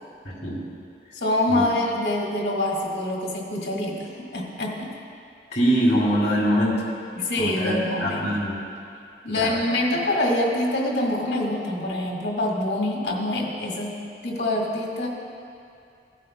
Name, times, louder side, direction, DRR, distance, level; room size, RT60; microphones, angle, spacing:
voice 1, 0.2-0.6 1.5-1.6 5.5-6.8 7.4-7.7 8.0-8.5 9.3-9.5, equal, 40° left, -5 dB, 2.5 m, -23 dB
voice 2, 1.1-4.9 7.2-8.4 9.2-15.1, left 1 dB, 65° left, -2 dB, 1.7 m, -25 dB
16.0 x 9.0 x 2.2 m, 2.4 s
head